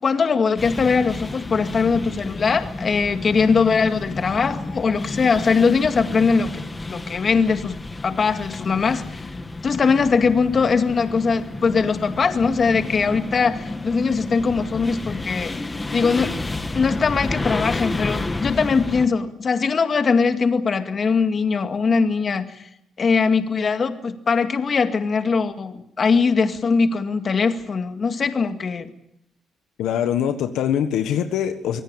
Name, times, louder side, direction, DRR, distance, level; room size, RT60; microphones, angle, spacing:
voice 1, 0.0-6.6 6.9-9.2 9.6-15.5 15.9-16.4 16.7-22.6 23.0-28.9, left 5 dB, 45° left, 7 dB, 2.1 m, -21 dB
sound 1, 0.6-19.1, left 2 dB, 20° left, 1.8 m, -31 dB
voice 2, 29.8-31.8, left 9 dB, 85° left, 8 dB, 1.5 m, -23 dB
25.5 x 17.0 x 9.0 m, 0.83 s
cardioid pair, 90°, 0 cm